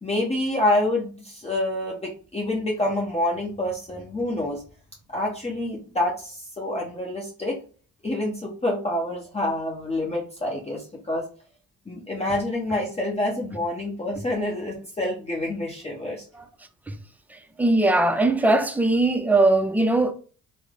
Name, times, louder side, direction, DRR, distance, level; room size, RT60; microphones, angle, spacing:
voice 1, 0.0-4.6 5.1-7.6 8.0-11.2 11.9-16.2, left 1 dB, 20° left, 0.8 m, -27 dB
voice 2, 17.3-20.1, right 2 dB, 5° right, 0.4 m, -20 dB
3.1 x 2.1 x 3.6 m
cardioid pair, 90°, 30 cm